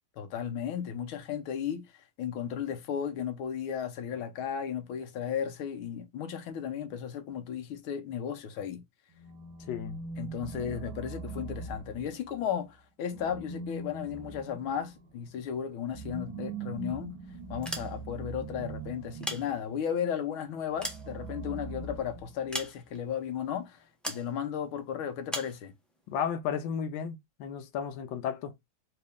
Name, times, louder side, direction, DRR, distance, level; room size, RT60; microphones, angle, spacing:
voice 1, 0.2-1.9 2.2-8.8 10.2-17.2 17.5-25.7, left 8 dB, 90° left, 1.7 m, -35 dB
sound 1, 9.1-12.4 13.1-19.7 20.7-22.6, right 4 dB, 75° right, 1.8 m, -42 dB
voice 2, 9.6-10.0 26.1-28.5, left 7 dB, 75° left, 1.3 m, -33 dB
sound 2, 17.5-18.3 19.0-20.0 20.5-21.7 22.5-23.1 24.0-24.3 25.3-25.6, equal, ahead, 0.5 m, -38 dB
4.1 x 3.0 x 3.4 m
omnidirectional pair, 2.2 m